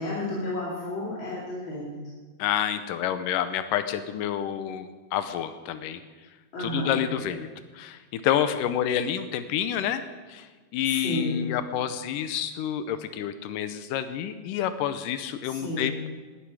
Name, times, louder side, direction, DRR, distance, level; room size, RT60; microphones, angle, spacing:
voice 1, 0.0-1.9 6.5-7.0 10.9-11.4 15.4-15.9, left 1 dB, 40° left, -6 dB, 3.0 m, -31 dB
voice 2, 2.4-6.0 6.6-7.5 7.7-10.0 10.3-16.1, left 10 dB, 85° left, 11 dB, 2.3 m, -28 dB
18.5 x 12.0 x 4.8 m, 1.3 s
omnidirectional pair, 3.8 m